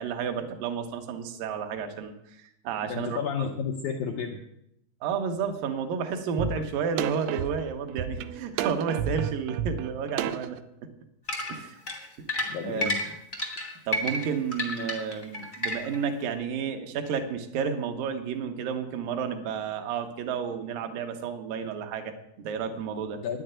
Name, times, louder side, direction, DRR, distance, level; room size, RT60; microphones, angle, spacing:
voice 1, 0.0-2.1 2.4-3.5 5.0-10.6 11.5-11.8 12.6-12.9 13.9-23.2, right 6 dB, 70° right, 5 dB, 2.5 m, -31 dB
voice 2, 2.9-4.4 12.4-13.0 23.2-23.4, left 7 dB, 80° left, 3 dB, 1.7 m, -31 dB
sound 1, 6.4-6.5 7.0-10.6, right 11 dB, 85° right, 2.6 m, -31 dB
sound 2, 11.3-16.1, left 1 dB, 30° left, 0.8 m, -31 dB
10.0 x 6.8 x 8.8 m, 0.78 s
omnidirectional pair, 4.7 m